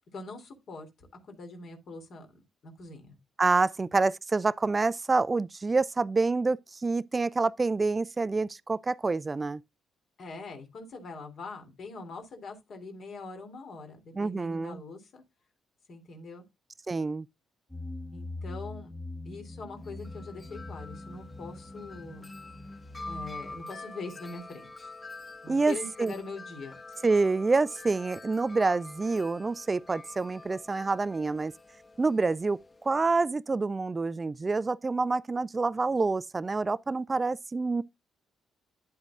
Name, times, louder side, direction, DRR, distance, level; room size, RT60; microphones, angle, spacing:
voice 1, 0.1-3.2 10.2-15.2 15.9-16.4 18.1-18.9 19.2-22.3 23.1-24.9 25.4-26.8, left 3 dB, 55° left, 3.0 m, -43 dB
voice 2, 3.4-9.6 14.2-14.8 16.9-17.3 25.5-26.1 27.0-31.5 32.0-37.8, right 3 dB, 30° right, 0.4 m, -27 dB
sound 1, 17.7-23.6, left 2 dB, 5° left, 1.3 m, -42 dB
Wind chime, 19.8-33.1, left 2 dB, 30° left, 1.5 m, -47 dB
10.5 x 8.0 x 2.4 m
figure-of-eight pair, 40°, 0 cm